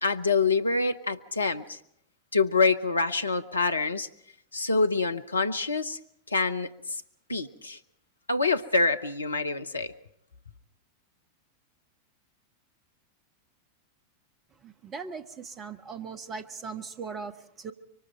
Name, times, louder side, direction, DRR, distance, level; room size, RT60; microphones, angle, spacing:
voice 1, 0.0-1.8 2.3-4.1 4.5-6.0 6.3-7.0 7.3-7.8 8.3-9.9, left 3 dB, 80° left, 0.8 m, -26 dB
voice 2, 14.6-17.7, right 5 dB, 25° right, 1.4 m, -39 dB
26.0 x 24.0 x 4.4 m
figure-of-eight pair, 90°, 0 cm